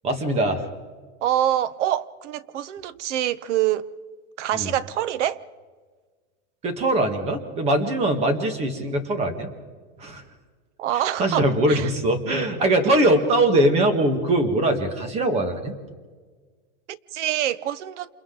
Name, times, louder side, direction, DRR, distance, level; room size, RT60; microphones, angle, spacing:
voice 1, 0.0-0.7 4.5-4.7 6.6-9.5 10.0-10.2 10.9-15.7, right 1 dB, 15° right, 1.6 m, -22 dB
voice 2, 1.2-3.9 4.4-5.4 10.8-11.9 16.9-18.1, right 12 dB, 75° right, 1.0 m, -25 dB
28.5 x 28.0 x 3.9 m
supercardioid pair, 175°, 36 cm